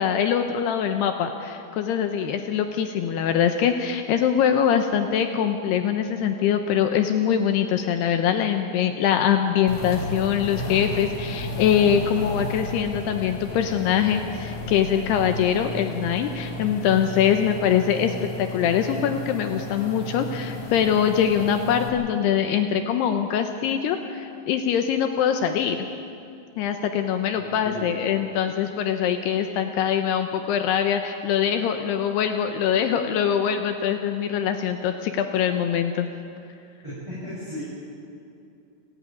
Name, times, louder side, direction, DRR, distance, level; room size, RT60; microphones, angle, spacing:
voice 1, 0.0-25.8 26.6-36.1, left 8 dB, 80° left, 6 dB, 2.4 m, -23 dB
sound 1, 9.7-21.9, left 1 dB, 45° left, 2.8 m, -33 dB
voice 2, 27.3-28.2 36.8-37.6, left 1 dB, 5° right, -11 dB, 7.5 m, -36 dB
29.5 x 11.5 x 9.3 m, 2.5 s
omnidirectional pair, 5.8 m